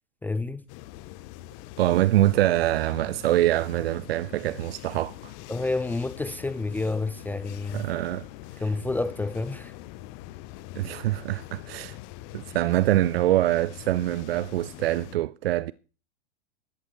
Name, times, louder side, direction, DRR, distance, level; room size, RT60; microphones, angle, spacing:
voice 1, 0.2-0.6 5.5-7.8 8.6-9.7, left 3 dB, 5° left, 0.6 m, -29 dB
sound 1, 0.7-15.2, left 16 dB, 35° left, 0.8 m, -43 dB
voice 2, 1.8-5.3 7.7-8.3 10.8-12.0 12.3-15.7, right 14 dB, 60° right, 0.5 m, -24 dB
14.0 x 11.0 x 4.5 m
figure-of-eight pair, 100°, 35 cm